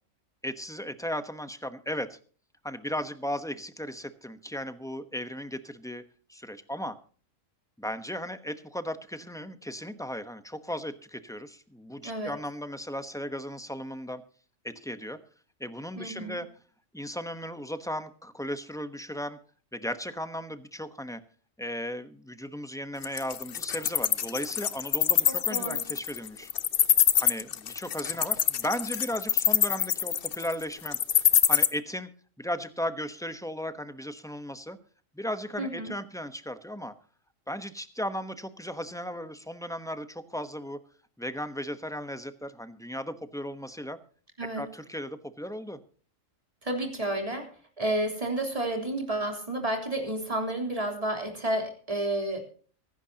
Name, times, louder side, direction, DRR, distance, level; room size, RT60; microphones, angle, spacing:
voice 1, 0.4-2.2 2.6-6.0 6.3-6.9 7.8-14.2 14.6-15.2 15.6-16.5 16.9-19.4 19.7-21.2 21.6-26.5 27.2-31.0 31.5-32.1 32.4-34.8 35.1-36.9 37.5-40.8 41.2-44.0 44.6-45.8, equal, 5° left, 10 dB, 0.9 m, -36 dB
voice 2, 12.0-12.4 16.0-16.4 25.3-25.9 35.6-35.9 44.4-44.6 46.6-47.5 47.8-52.4, right 1 dB, 25° right, 2 dB, 3.6 m, -31 dB
Wild animals, 23.0-31.7, left 9 dB, 50° left, 0.8 m, -24 dB
24.0 x 11.5 x 2.9 m, 0.43 s
omnidirectional pair, 1.3 m